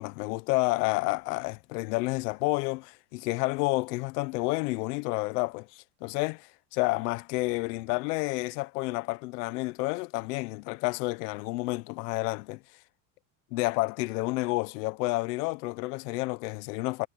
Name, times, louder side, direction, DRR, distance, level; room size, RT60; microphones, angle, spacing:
voice 1, 0.0-12.6 13.5-17.1, left 24 dB, 75° left, 1.0 m, -30 dB
supercardioid pair, 140°, 47 cm